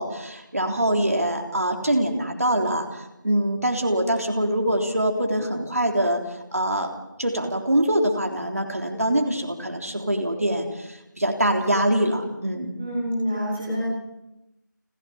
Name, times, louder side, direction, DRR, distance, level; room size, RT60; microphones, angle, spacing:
voice 1, 0.0-6.2 6.5-6.9 7.2-12.7, right 1 dB, 50° right, 2 dB, 3.6 m, -24 dB
voice 2, 12.8-13.9, equal, 5° right, -7 dB, 1.0 m, -27 dB
29.5 x 13.0 x 7.1 m, 0.94 s
figure-of-eight pair, 175°, 11 cm